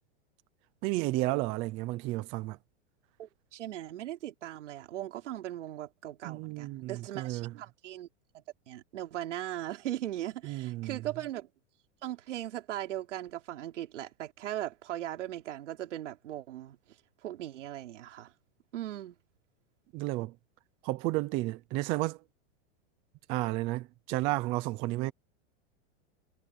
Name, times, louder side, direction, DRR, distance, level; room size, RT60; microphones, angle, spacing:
voice 1, 0.8-2.6 6.2-7.5 10.4-11.0 19.9-20.3 20.8-22.2 23.3-25.1, right 19 dB, 15° right, 0.4 m, -32 dB
voice 2, 3.2-8.1 8.7-11.5 12.0-16.8 17.2-18.3 18.7-19.2, right 13 dB, 85° right, 3.6 m, -38 dB
supercardioid pair, 160°, 35 cm